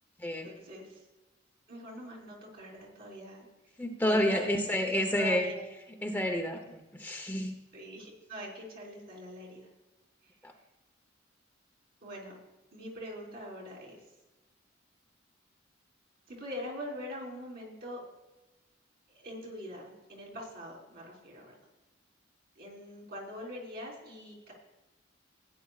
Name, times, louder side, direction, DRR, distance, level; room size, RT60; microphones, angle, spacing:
voice 1, 0.4-1.0 1.7-3.5 4.0-5.6 7.7-9.7 12.0-12.3 12.7-14.0 16.3-18.0 19.1-21.5 22.6-24.5, equal, 55° right, -2 dB, 3.9 m, -43 dB
voice 2, 3.8-5.5 6.0-7.5 10.4-10.5, left 1 dB, 10° left, 3 dB, 0.9 m, -29 dB
16.0 x 10.0 x 2.4 m, 1.1 s
head